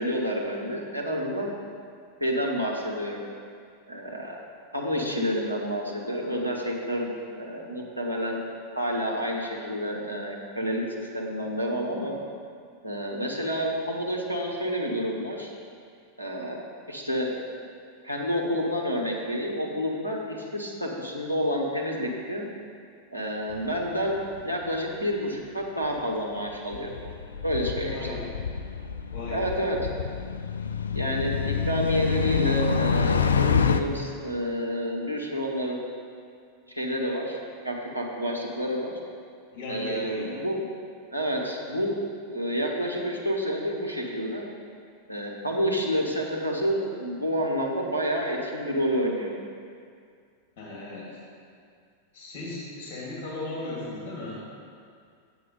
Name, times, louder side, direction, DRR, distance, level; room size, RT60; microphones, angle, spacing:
voice 1, 0.0-1.5 2.2-3.2 3.9-4.4 4.7-7.1 7.4-8.4 8.7-12.2 12.8-15.5 16.2-16.6 16.9-17.3 18.0-22.5 23.1-26.9 27.4-28.0 29.3-29.8 30.9-35.8 36.7-37.4 37.6-38.9 39.7-40.6 41.1-42.0 42.3-44.5 45.1-49.4, equal, 85° right, -2 dB, 1.3 m, -29 dB
sound 1, 23.5-24.1 24.4-24.5 26.5-33.8, left 6 dB, 70° left, 0.4 m, -27 dB
voice 2, 27.8-28.4 29.1-29.6 39.5-40.4 50.6-51.2 52.1-54.5, left 2 dB, 45° left, -6 dB, 2.3 m, -36 dB
8.1 x 7.0 x 5.4 m, 2.2 s
figure-of-eight pair, 90°, 0 cm